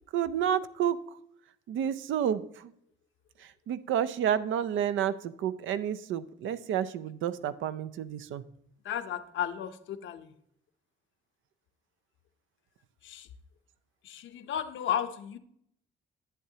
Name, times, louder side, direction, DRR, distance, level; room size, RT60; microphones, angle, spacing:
voice 1, 0.1-1.0 1.7-2.7 3.7-8.4, right 9 dB, 80° right, 15 dB, 0.6 m, -30 dB
voice 2, 8.8-10.3 13.0-13.3 14.0-15.4, left 9 dB, 75° left, 10 dB, 0.7 m, -34 dB
10.5 x 8.2 x 2.8 m, 0.70 s
cardioid pair, 90°, 20 cm